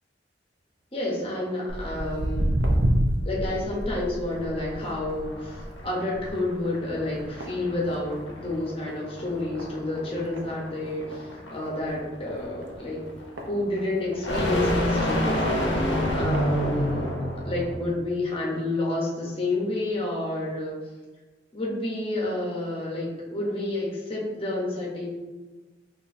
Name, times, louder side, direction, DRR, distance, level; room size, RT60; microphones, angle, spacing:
voice 1, 0.9-2.5 3.2-13.0 13.5-17.0 17.4-20.7 21.5-25.1, left 2 dB, 30° left, -4 dB, 0.9 m, -30 dB
Walk footsteps, 1.7-8.4 8.7-9.0 9.6-9.7 10.4-10.5 10.8-10.9 11.1-11.2 11.8-12.0 12.6-14.2 14.8-14.9 15.6-15.7 16.1-16.4 17.1-17.2, equal, 90° right, 0.7 m, -28 dB
sound 1, 4.3-17.8, equal, 80° left, 0.8 m, -29 dB
4.4 x 2.6 x 2.6 m, 1.3 s
head